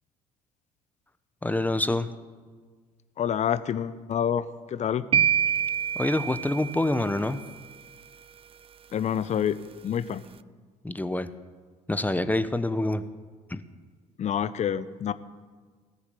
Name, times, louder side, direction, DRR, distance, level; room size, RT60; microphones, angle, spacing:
voice 1, 1.4-2.1 5.9-7.4 10.8-11.3 11.9-13.1 13.5-13.6, left 2 dB, 10° left, 12 dB, 1.0 m, -26 dB
voice 2, 3.2-5.0 8.9-9.6 9.8-10.2 14.2-15.1, left 9 dB, 40° left, 15 dB, 0.9 m, -27 dB
sound 1, 5.1-7.2, right 9 dB, 30° right, 0.5 m, -26 dB
19.0 x 7.1 x 9.4 m, 1.5 s
figure-of-eight pair, 55°, 18 cm